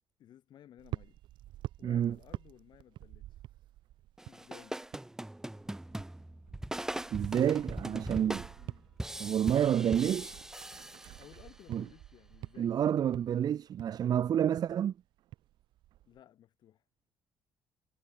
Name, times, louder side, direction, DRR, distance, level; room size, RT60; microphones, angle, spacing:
voice 1, 0.2-1.2 1.8-3.4 4.3-4.8 8.6-8.9 11.1-12.8 16.1-16.8, left 11 dB, 65° left, 7.3 m, -57 dB
sound 1, 0.8-5.2 5.4-16.2, right 15 dB, 80° right, 3.3 m, -48 dB
voice 2, 1.8-2.1 7.1-8.4 9.2-10.4 11.7-11.8 12.6-14.9, right 9 dB, 55° right, 0.9 m, -29 dB
sound 2, 4.2-11.6, right 1 dB, 5° right, 0.6 m, -40 dB
cardioid pair, 85°, 8 cm